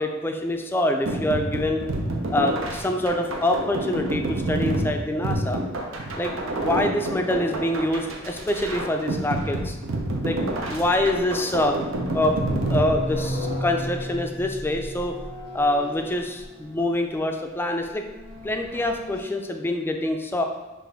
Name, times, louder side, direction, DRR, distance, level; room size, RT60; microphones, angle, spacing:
voice 1, 0.0-1.8 2.3-5.6 6.2-6.3 6.6-9.8 10.2-10.4 10.7-11.8 12.1-12.4 12.7-15.1 15.5-18.1 18.4-20.4, left 1 dB, 10° left, 4 dB, 0.3 m, -25 dB
sound 1, 1.1-13.6, right 1 dB, 85° right, 0.7 m, -29 dB
sound 2, 10.9-11.2 11.6-17.1 17.9-19.2, equal, 25° right, 0.9 m, -34 dB
6.0 x 2.6 x 3.4 m, 1.1 s
head